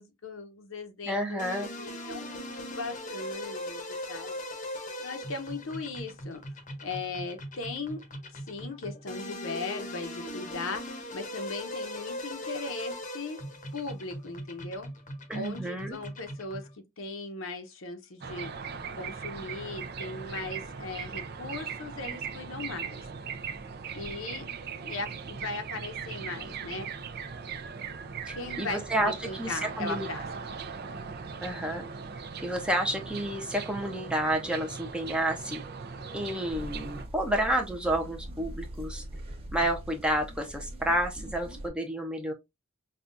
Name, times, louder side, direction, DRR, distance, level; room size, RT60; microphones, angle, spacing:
voice 1, 0.0-3.8 4.1-4.4 5.0-6.4 6.8-8.0 8.3-13.4 13.7-14.9 15.3-16.6 17.0-18.5 19.0-23.1 23.9-24.5 24.8-26.9 28.3-30.5, left 3 dB, 65° left, 0.8 m, -38 dB
voice 2, 1.1-1.7 15.3-16.0 28.3-30.1 31.4-31.9 32.4-35.6 36.1-39.0 39.5-42.3, right 1 dB, 5° right, 0.6 m, -30 dB
sound 1, 1.4-16.7, left 1 dB, 35° left, 0.8 m, -40 dB
sound 2, 18.2-37.1, right 6 dB, 45° right, 0.5 m, -39 dB
sound 3, 36.5-41.7, right 1 dB, 25° right, 0.9 m, -41 dB
5.4 x 2.3 x 2.5 m
head